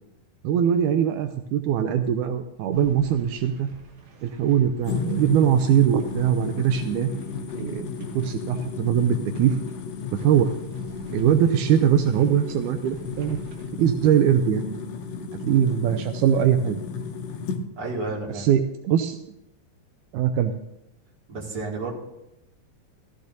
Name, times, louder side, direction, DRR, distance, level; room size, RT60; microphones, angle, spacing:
voice 1, 0.4-3.7 4.2-7.1 7.6-9.6 10.1-10.5 11.1-13.4 13.8-14.8 15.4-16.8 18.3-19.2 20.1-20.5, right 9 dB, 85° right, 7 dB, 1.8 m, -22 dB
sound 1, 2.7-13.6, right 1 dB, 60° right, 2.6 m, -48 dB
sound 2, 4.8-17.6, left 5 dB, 75° left, 1.5 m, -33 dB
voice 2, 17.8-18.5 21.3-21.9, right 3 dB, 35° right, -3 dB, 2.5 m, -31 dB
15.0 x 14.5 x 2.7 m, 0.88 s
omnidirectional pair, 4.0 m